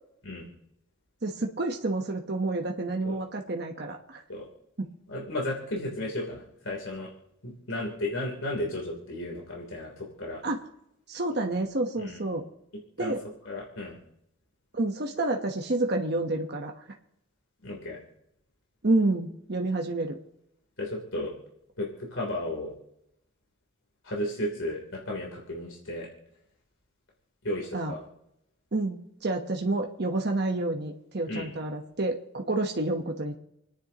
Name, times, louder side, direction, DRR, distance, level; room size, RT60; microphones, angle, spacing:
voice 1, 1.2-4.2 10.4-10.7 11.1-12.4 13.0-13.2 14.7-16.8 18.8-20.2 27.7-27.9 28.7-33.3, right 2 dB, 50° right, 2 dB, 1.0 m, -29 dB
voice 2, 5.1-7.1 7.4-10.4 12.0-12.2 13.0-13.1 13.4-14.0 17.6-18.0 20.8-21.3 21.8-22.7 24.0-26.1 27.4-28.0 31.3-31.5, left 1 dB, 80° left, -2 dB, 3.3 m, -34 dB
30.0 x 10.0 x 2.9 m, 0.82 s
head